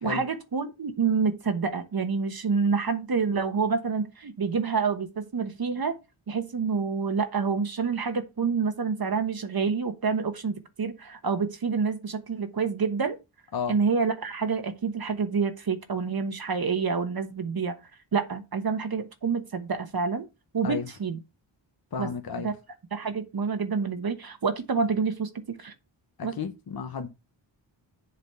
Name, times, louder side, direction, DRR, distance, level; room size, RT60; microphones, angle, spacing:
voice 1, 0.0-6.0 6.3-13.2 13.7-17.8 18.1-20.3 20.5-21.2 22.0-22.1 22.4-22.5 22.9-25.7 26.2-26.3, right 5 dB, 50° right, 1.2 m, -28 dB
voice 2, 21.9-22.5 26.2-27.1, left 6 dB, 50° left, 1.0 m, -32 dB
7.7 x 4.0 x 6.8 m
cardioid pair, 70°, 46 cm